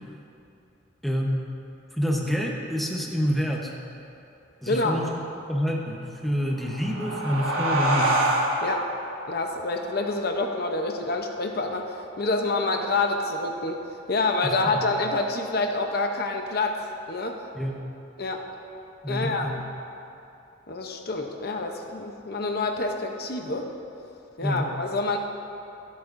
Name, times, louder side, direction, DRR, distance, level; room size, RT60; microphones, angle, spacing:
voice 1, 1.0-1.5 1.9-3.7 4.6-5.1 5.5-8.2 14.4-14.8 17.5-17.8 19.0-19.6 24.4-24.7, equal, ahead, -1 dB, 1.0 m, -27 dB
voice 2, 4.7-5.0 8.6-8.9 9.3-13.8 14.1-17.4 18.2-18.4 19.1-19.6 20.7-23.7 24.4-25.2, left 2 dB, 50° left, 3 dB, 0.7 m, -27 dB
sound 1, 6.5-11.6, right 1 dB, 85° right, 1.6 m, -28 dB
23.5 x 8.3 x 2.6 m, 2.7 s
head